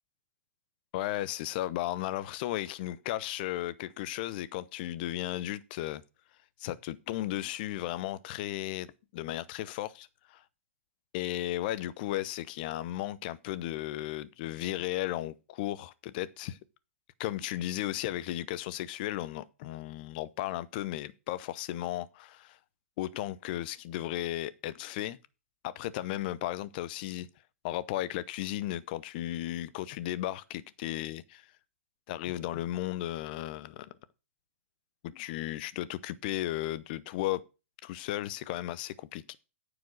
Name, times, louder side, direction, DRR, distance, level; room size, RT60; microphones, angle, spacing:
voice 1, 0.9-6.0 6.6-10.4 11.1-16.6 17.2-22.6 23.0-25.2 25.6-27.3 27.6-31.5 32.1-33.9 35.0-37.4 37.9-39.4, left 14 dB, 45° left, 0.8 m, -35 dB
9.3 x 4.9 x 6.4 m
hypercardioid pair, 125°, 7 cm